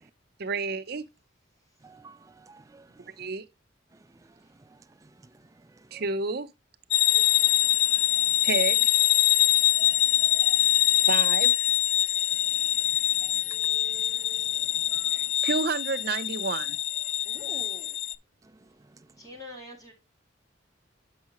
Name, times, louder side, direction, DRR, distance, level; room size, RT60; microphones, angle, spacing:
voice 1, 0.4-1.1 3.2-3.4 5.9-6.5 8.4-8.9 11.1-11.5 15.1-16.8, right 4 dB, 55° right, 0.6 m, -30 dB
voice 2, 1.8-2.2 2.5-2.9 5.9-6.0 9.8-10.6 13.2-13.3 13.7-14.4 14.9-15.0, right 3 dB, 15° right, 0.3 m, -51 dB
sound 1, 6.9-18.1, left 14 dB, 70° left, 0.3 m, -24 dB
voice 3, 17.2-18.0 19.2-19.9, left 2 dB, 20° left, 2.3 m, -44 dB
7.7 x 5.6 x 2.9 m
head